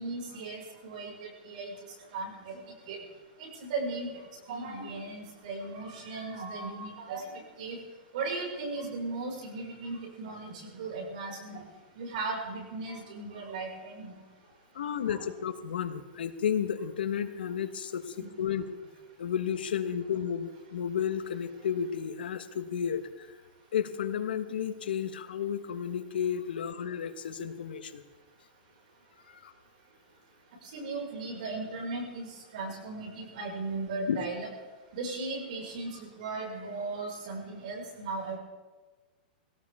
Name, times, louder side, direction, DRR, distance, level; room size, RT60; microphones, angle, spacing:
voice 1, 0.0-1.7 2.1-2.6 2.9-3.0 3.4-7.8 8.1-11.6 12.0-14.1 15.0-15.2 18.2-18.3 30.6-34.5 34.9-38.4, right 3 dB, 55° right, -1 dB, 5.7 m, -37 dB
voice 2, 14.7-18.7 19.2-23.3 23.7-28.0 29.3-29.5 34.1-34.3, left 8 dB, 85° left, 10 dB, 1.2 m, -32 dB
20.5 x 17.5 x 3.6 m, 1.3 s
supercardioid pair, 160°, 5 cm